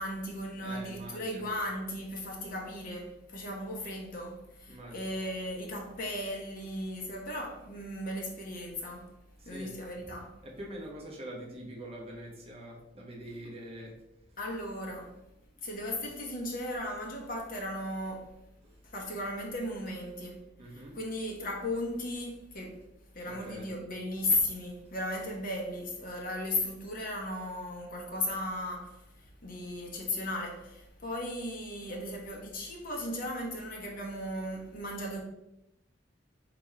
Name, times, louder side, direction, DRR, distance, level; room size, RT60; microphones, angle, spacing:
voice 1, 0.0-9.1 9.4-10.4 14.4-15.1 15.6-18.4 18.8-20.4 20.7-22.8 23.1-35.2, left 1 dB, 50° left, 1.0 m, -36 dB
voice 2, 0.6-1.4 4.7-5.0 9.4-9.7 10.4-13.9 18.6-18.7 20.6-21.0 23.2-23.7, right 1 dB, 30° right, 1.0 m, -44 dB
3.5 x 3.0 x 4.6 m
head